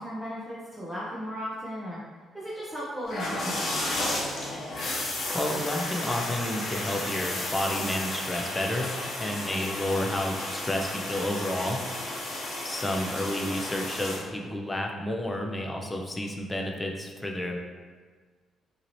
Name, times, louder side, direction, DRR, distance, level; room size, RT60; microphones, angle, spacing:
voice 1, 0.0-2.0 2.3-4.2, equal, 10° right, -8 dB, 0.9 m, -36 dB
sound 1, 3.0-14.2, left 1 dB, 55° left, 1.1 m, -33 dB
voice 2, 5.3-8.9 9.2-11.8 12.6-17.6, left 1 dB, 15° left, 1 dB, 0.7 m, -30 dB
5.7 x 2.8 x 3.1 m, 1.5 s
cardioid pair, 90°, 0 cm